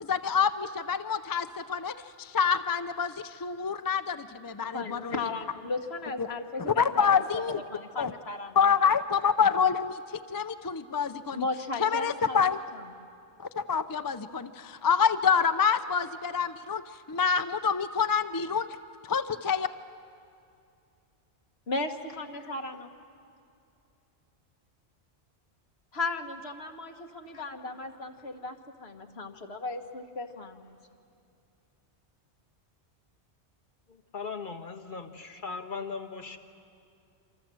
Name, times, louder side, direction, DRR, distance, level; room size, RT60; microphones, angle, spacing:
voice 1, 0.0-5.3 6.2-6.3 6.6-7.6 8.0-8.1 8.6-11.5 11.8-12.6 13.4-18.7 19.0-19.7, left 6 dB, 30° left, 10 dB, 0.4 m, -27 dB
voice 2, 4.7-7.2 7.5-8.6 11.3-12.4 21.7-22.9 25.9-30.8, left 3 dB, 65° left, 4 dB, 1.7 m, -36 dB
voice 3, 34.1-36.4, left 5 dB, 45° left, 3 dB, 1.5 m, -38 dB
27.0 x 26.0 x 7.7 m, 2.5 s
omnidirectional pair, 1.2 m